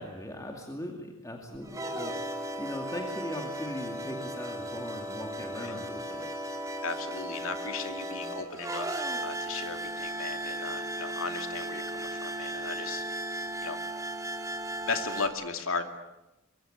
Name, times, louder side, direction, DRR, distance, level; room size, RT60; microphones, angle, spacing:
voice 1, 0.0-6.3, left 1 dB, 15° left, 2 dB, 2.4 m, -39 dB
sound 1, 1.6-15.3, right 1 dB, 15° right, 2.6 m, -36 dB
voice 2, 6.8-13.0 13.6-13.8 14.8-15.8, left 4 dB, 75° left, 7 dB, 2.6 m, -36 dB
23.5 x 23.5 x 8.9 m, 0.98 s
head